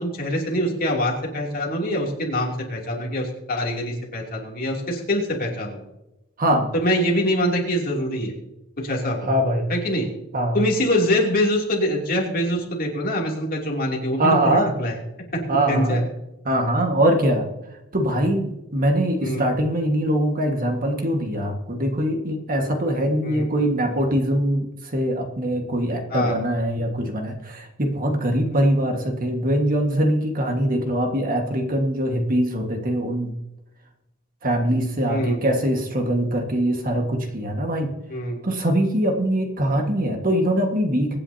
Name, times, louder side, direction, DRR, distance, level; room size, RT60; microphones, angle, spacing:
voice 1, 0.0-5.8 6.7-8.3 8.8-9.3 9.7-10.1 10.5-14.9 15.3-16.0 19.2-19.4 23.2-23.5 26.1-26.4 35.1-35.4 38.1-38.4, equal, 45° left, -1 dB, 2.9 m, -24 dB
voice 2, 6.4-6.7 9.2-9.7 10.3-10.6 14.2-14.7 15.5-16.0 16.4-17.5 17.9-33.3 34.4-37.9 38.4-41.2, right 1 dB, 40° right, 3 dB, 1.7 m, -22 dB
24.0 x 9.6 x 2.8 m, 0.94 s
head